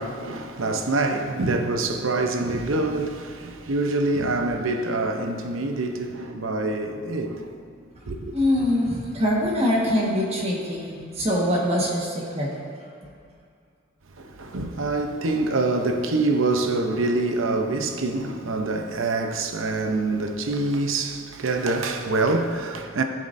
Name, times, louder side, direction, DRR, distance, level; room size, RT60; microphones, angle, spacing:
voice 1, 0.0-7.6 8.1-8.3 14.2-23.0, right 2 dB, 90° right, 0.7 m, -25 dB
voice 2, 8.3-12.5, left 1 dB, 30° right, 1.5 m, -23 dB
16.5 x 7.3 x 2.6 m
head